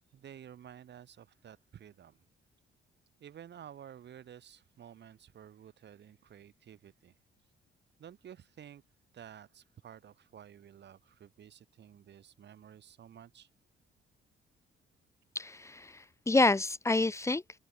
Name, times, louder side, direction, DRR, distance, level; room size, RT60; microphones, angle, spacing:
voice 1, 0.0-2.2 3.2-7.2 8.0-8.8 9.1-13.5, right 9 dB, 60° right, 3.0 m, -52 dB
voice 2, 15.3-17.6, left 2 dB, 15° left, 0.8 m, -28 dB
open air
cardioid pair, 90°, 20 cm